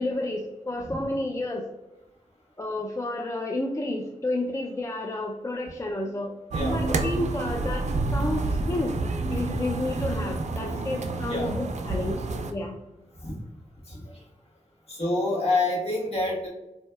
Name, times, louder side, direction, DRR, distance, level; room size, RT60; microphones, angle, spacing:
voice 1, 0.0-1.7 2.6-6.4 6.7-9.0 9.3-12.8, left 2 dB, 25° left, 1 dB, 0.4 m, -31 dB
sound 1, 6.5-12.5, right 3 dB, 60° right, 0.4 m, -29 dB
voice 2, 13.9-14.2 14.9-16.5, left 2 dB, 50° left, -3 dB, 1.2 m, -27 dB
4.0 x 2.6 x 2.2 m, 1.0 s
cardioid pair, 50°, 13 cm